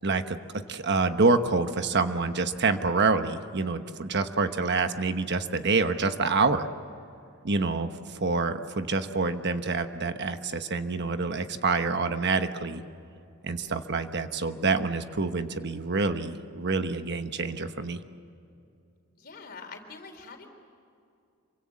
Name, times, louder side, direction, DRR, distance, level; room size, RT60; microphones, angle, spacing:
voice 1, 0.0-0.4 0.7-6.7 7.4-12.8 13.4-18.0, right 4 dB, 55° right, 8 dB, 1.1 m, -27 dB
voice 2, 19.2-20.5, left 4 dB, 45° left, 4 dB, 3.8 m, -44 dB
27.0 x 24.5 x 7.7 m, 2.5 s
head